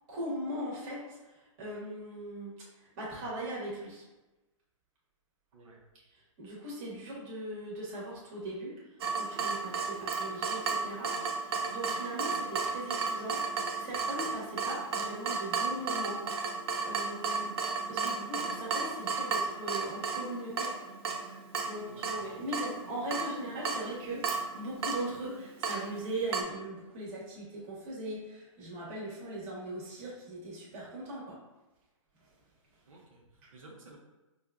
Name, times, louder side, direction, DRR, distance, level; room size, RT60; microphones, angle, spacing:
voice 1, 0.1-4.0 6.4-16.2 16.8-17.6 17.9-20.7 21.5-31.4, right 1 dB, 30° right, -5 dB, 1.2 m, -39 dB
voice 2, 5.5-5.8 21.9-22.4 32.9-34.0, right 2 dB, 85° right, -2 dB, 0.9 m, -54 dB
Water tap faucet / Drip, 9.0-26.4, right 4 dB, 50° right, 0.5 m, -34 dB
5.1 x 2.4 x 2.3 m, 1.1 s
hypercardioid pair, 145°, 17 cm